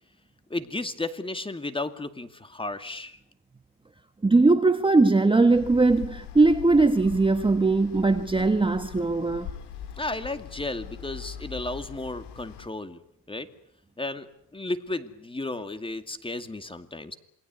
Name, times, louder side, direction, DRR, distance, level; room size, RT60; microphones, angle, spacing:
voice 1, 0.5-3.2 10.0-13.0 13.3-13.5 14.0-14.3 14.5-17.2, left 2 dB, 10° left, 2.3 m, -33 dB
voice 2, 4.2-9.5, right 3 dB, 10° right, 1.3 m, -20 dB
sound 1, 5.5-12.7, left 8 dB, 70° left, 4.2 m, -42 dB
27.5 x 21.5 x 9.5 m
cardioid pair, 120°, 43 cm